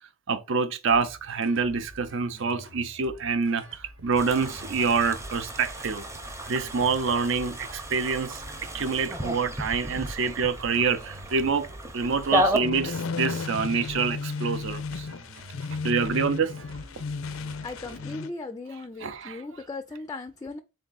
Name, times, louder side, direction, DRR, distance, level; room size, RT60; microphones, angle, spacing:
voice 1, 0.3-6.0 6.5-8.4 8.7-11.7 11.9-15.1 15.8-16.5 19.0-19.4, right 5 dB, 65° right, 0.6 m, -26 dB
sound 1, 0.9-18.2, right 1 dB, 90° right, 1.1 m, -48 dB
sound 2, 4.1-12.6, equal, 15° right, 0.7 m, -33 dB
sound 3, 12.6-18.3, left 4 dB, 80° left, 0.4 m, -34 dB
voice 2, 17.6-20.6, left 3 dB, 20° left, 0.3 m, -37 dB
3.8 x 3.5 x 3.9 m
head